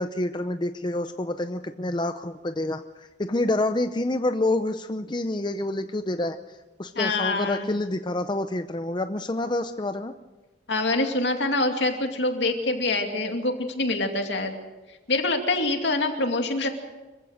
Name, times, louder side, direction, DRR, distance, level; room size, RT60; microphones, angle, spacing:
voice 1, 0.0-10.1, left 2 dB, 25° left, 8 dB, 0.6 m, -28 dB
voice 2, 7.0-7.7 10.7-14.5 15.1-16.7, left 2 dB, 65° left, 4 dB, 2.6 m, -25 dB
26.0 x 15.5 x 6.5 m, 1.2 s
head